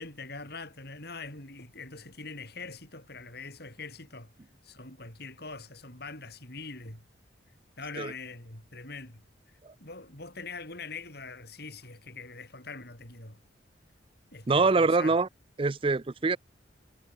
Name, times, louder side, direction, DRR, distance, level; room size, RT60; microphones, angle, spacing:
voice 1, 0.0-4.3 4.6-7.0 7.8-9.2 9.8-13.4 14.3-15.2, left 3 dB, 55° left, 5.7 m, -43 dB
voice 2, 14.5-15.3 15.6-16.4, right 3 dB, 30° right, 0.5 m, -24 dB
head